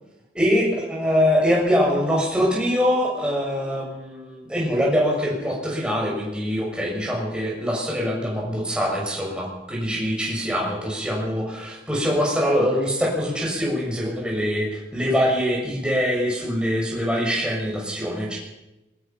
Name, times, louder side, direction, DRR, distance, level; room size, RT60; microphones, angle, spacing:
voice 1, 0.3-18.4, equal, 5° right, -3 dB, 6.7 m, -23 dB
21.5 x 21.0 x 5.9 m, 0.98 s
head